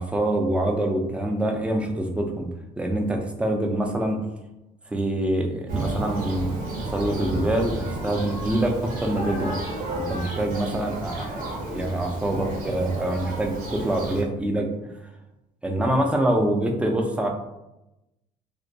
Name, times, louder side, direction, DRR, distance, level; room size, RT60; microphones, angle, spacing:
voice 1, 0.0-2.5 2.8-4.2 4.9-9.5 9.9-14.7 15.6-17.3, right 1 dB, 5° right, 2 dB, 0.3 m, -25 dB
Thunder, 5.7-14.2, right 2 dB, 55° right, 0.7 m, -32 dB
2.2 x 2.1 x 2.6 m, 0.92 s
cardioid pair, 110°, 17 cm